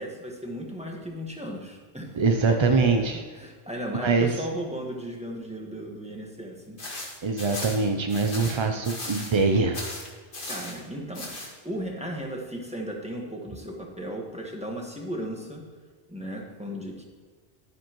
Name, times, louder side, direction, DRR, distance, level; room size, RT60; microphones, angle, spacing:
voice 1, 0.0-2.2 2.5-6.8 10.4-11.3 11.6-15.6 16.1-17.1, equal, 5° right, -1 dB, 1.4 m, -36 dB
voice 2, 2.1-3.2 4.0-4.4 7.2-9.8, right 4 dB, 40° right, 5 dB, 0.4 m, -23 dB
sound 1, 6.8-9.4 9.7-10.8 11.1-11.5, left 1 dB, 55° left, 2.0 m, -37 dB
10.5 x 9.7 x 3.0 m, 1.6 s
omnidirectional pair, 1.1 m